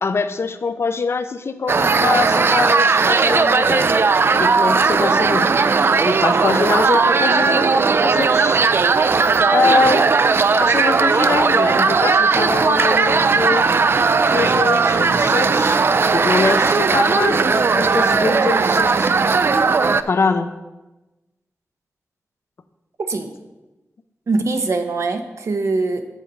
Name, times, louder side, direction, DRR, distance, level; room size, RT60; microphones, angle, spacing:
voice 1, 0.0-3.9 4.4-5.5 6.0-8.6 9.5-10.1 10.6-13.7 14.3-15.8 16.1-19.1 20.1-20.5, left 4 dB, 60° left, 10 dB, 0.6 m, -23 dB
sound 1, 1.7-20.0, right 4 dB, 55° right, 0.4 m, -17 dB
voice 2, 23.0-23.3 24.3-26.0, right 3 dB, 75° right, 6 dB, 0.9 m, -22 dB
7.5 x 7.2 x 5.4 m, 1.1 s
wide cardioid pair, 120°, 5 cm